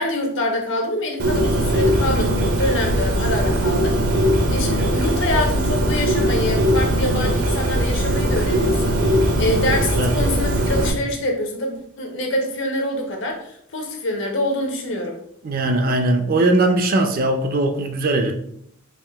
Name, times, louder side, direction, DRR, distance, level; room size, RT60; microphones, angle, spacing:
voice 1, 0.0-4.0 4.5-15.2, left 1 dB, 60° left, 3 dB, 0.8 m, -25 dB
Bird, 1.2-10.9, right 1 dB, 80° right, 0.9 m, -20 dB
voice 2, 15.4-18.3, right 2 dB, 45° right, 5 dB, 0.4 m, -19 dB
3.6 x 2.5 x 3.4 m, 0.69 s
head